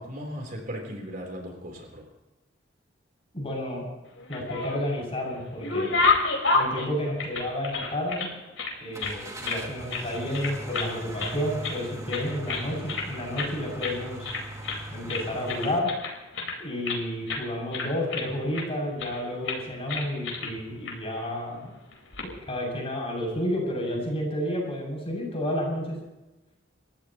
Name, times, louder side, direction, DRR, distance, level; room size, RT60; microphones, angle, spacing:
voice 1, 0.0-2.1, equal, 45° right, 1 dB, 3.9 m, -37 dB
voice 2, 3.3-3.9 4.3-5.9 6.5-8.3 8.8-14.3 14.9-15.9 16.6-21.7 22.2-26.0, left 1 dB, 30° left, -1 dB, 7.3 m, -31 dB
sound 1, 4.2-5.0 5.4-8.3 8.6-9.6 9.9-10.1 10.3-10.9 11.2-11.8 12.1-13.1 13.4-13.5 13.8-14.0 14.2-14.8 15.1-17.0 17.3-17.5 17.7-18.7 19.0-19.2 19.5-19.6 19.9-20.5 20.9-21.0 21.9-22.3, left 4 dB, 90° left, 4.7 m, -29 dB
Car / Engine starting, 8.9-15.8, right 1 dB, 15° right, 2.4 m, -39 dB
29.5 x 15.0 x 3.1 m, 1.1 s
head